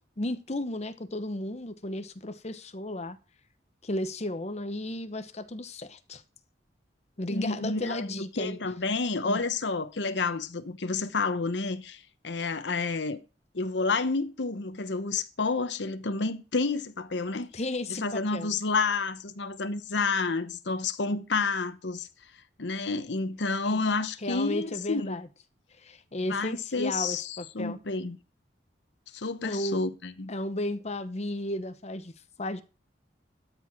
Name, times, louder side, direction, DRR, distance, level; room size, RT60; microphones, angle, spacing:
voice 1, 0.0-3.2 3.8-6.2 7.2-8.6 9.2-9.4 17.5-18.5 23.7-23.8 24.2-25.3 25.8-27.8 29.4-29.8 30.3-32.1 32.4-32.6, left 1 dB, 35° left, 0.9 m, -34 dB
voice 2, 7.3-8.0 8.4-13.2 13.5-17.5 17.9-22.1 22.6-25.2 26.3-28.2 29.1-30.3, left 4 dB, 70° left, 0.9 m, -30 dB
12.5 x 4.9 x 5.9 m
head